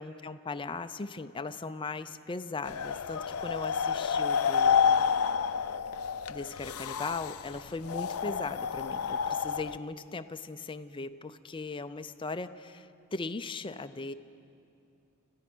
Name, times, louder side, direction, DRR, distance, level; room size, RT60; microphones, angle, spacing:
voice 1, 0.0-5.0 6.3-14.1, left 3 dB, 25° left, 9 dB, 0.5 m, -38 dB
sound 1, 2.6-9.8, left 6 dB, 85° left, 0.5 m, -29 dB
30.0 x 14.5 x 6.2 m, 2.6 s
head